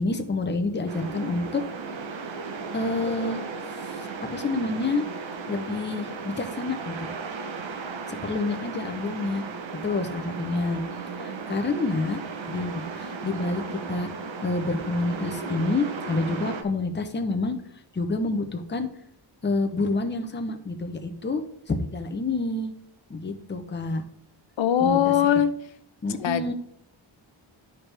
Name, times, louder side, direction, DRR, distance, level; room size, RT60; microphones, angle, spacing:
voice 1, 0.0-1.6 2.7-3.4 3.8-5.0 5.5-7.1 8.1-9.4 9.8-10.8 11.1-12.2 12.5-13.6 13.9-14.1 14.4-17.6 17.9-18.9 19.4-22.7 23.1-24.0 24.8-25.1 26.0-26.5, left 3 dB, 25° left, 7 dB, 0.7 m, -28 dB
sound 1, 0.9-16.6, right 4 dB, 70° right, 0.9 m, -35 dB
voice 2, 24.6-25.5 26.2-26.5, left 9 dB, 70° left, 12 dB, 0.7 m, -21 dB
11.5 x 4.5 x 3.3 m, 0.69 s
wide cardioid pair, 150°, 47 cm